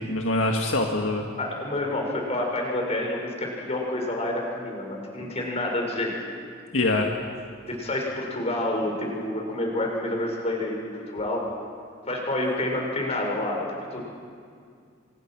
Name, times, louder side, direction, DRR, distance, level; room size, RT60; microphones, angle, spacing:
voice 1, 0.1-1.2 6.7-7.1, left 2 dB, 70° left, 1 dB, 1.9 m, -24 dB
voice 2, 1.4-6.1 7.7-11.4 12.1-14.0, left 1 dB, 35° left, 0 dB, 6.0 m, -28 dB
29.5 x 26.0 x 6.2 m, 2.2 s
head